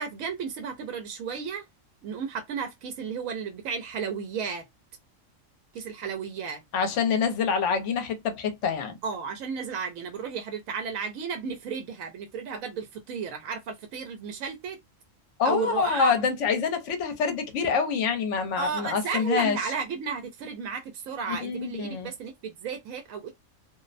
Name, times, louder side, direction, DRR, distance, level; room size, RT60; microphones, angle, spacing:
voice 1, 0.0-1.7 2.0-4.7 5.7-6.6 9.0-14.8 15.4-16.1 18.6-23.3, right 5 dB, 90° right, 1.0 m, -33 dB
voice 2, 6.7-9.0 15.4-19.6 21.4-22.1, left 6 dB, 70° left, 1.0 m, -26 dB
2.6 x 2.0 x 2.4 m
omnidirectional pair, 1.4 m